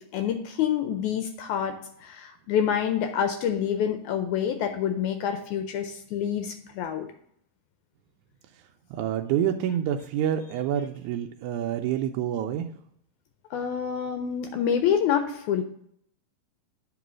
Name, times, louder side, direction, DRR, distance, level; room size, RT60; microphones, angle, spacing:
voice 1, 0.0-7.1 13.5-15.6, left 8 dB, 80° left, 6 dB, 1.7 m, -27 dB
voice 2, 9.0-12.7, right 10 dB, 85° right, 4 dB, 1.7 m, -27 dB
8.9 x 3.1 x 6.0 m, 0.69 s
omnidirectional pair, 4.0 m